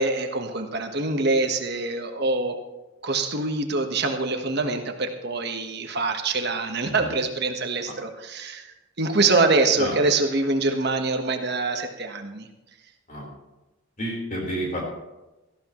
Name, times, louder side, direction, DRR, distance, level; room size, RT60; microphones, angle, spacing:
voice 1, 0.0-2.5 3.0-8.7 9.0-12.5, right 3 dB, 50° right, 5 dB, 1.3 m, -24 dB
voice 2, 14.0-14.9, equal, 35° left, -1 dB, 4.2 m, -30 dB
18.0 x 14.0 x 3.1 m, 1.0 s
head